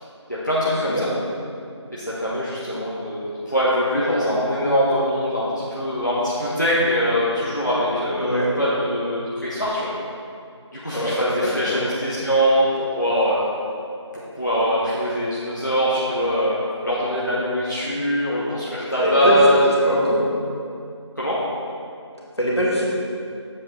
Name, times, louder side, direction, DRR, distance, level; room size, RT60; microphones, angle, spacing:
voice 1, 0.3-1.1 1.9-9.9 10.7-13.4 14.4-19.7 21.2-21.4, equal, 40° left, -8 dB, 0.9 m, -22 dB
voice 2, 8.2-8.5 10.9-11.8 19.0-20.2 22.4-22.8, equal, 60° left, -5 dB, 1.8 m, -22 dB
7.5 x 6.8 x 3.2 m, 2.5 s
figure-of-eight pair, 180°, 15 cm